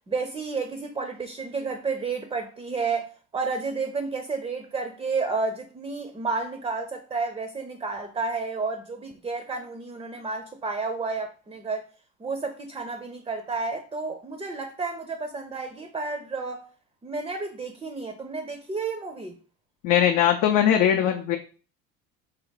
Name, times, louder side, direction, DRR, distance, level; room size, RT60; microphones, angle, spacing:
voice 1, 0.1-11.8 12.2-16.6 17.0-19.3, right 4 dB, 15° right, 0.5 m, -31 dB
voice 2, 19.8-21.4, left 9 dB, 75° left, 0.5 m, -20 dB
3.6 x 2.2 x 3.8 m
supercardioid pair, 85°, 33 cm